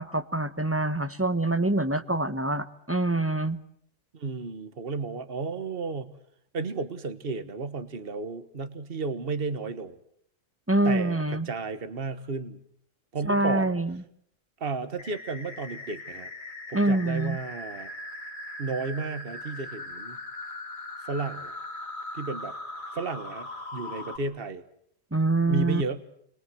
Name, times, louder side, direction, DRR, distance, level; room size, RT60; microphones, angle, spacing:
voice 1, 0.0-3.6 10.7-11.5 13.2-14.0 16.7-17.4 25.1-25.8, right 2 dB, 10° right, 11 dB, 1.0 m, -25 dB
voice 2, 4.1-6.1 6.5-10.0 10.8-12.6 13.1-13.8 14.6-16.3 16.7-17.9 18.6-20.2 21.0-21.5 22.1-22.5 22.9-24.6 25.5-26.0, right 4 dB, 50° right, 11 dB, 1.7 m, -33 dB
sound 1, 15.0-24.2, left 2 dB, 40° left, 2.8 m, -40 dB
30.0 x 22.5 x 7.9 m, 0.69 s
omnidirectional pair, 1.3 m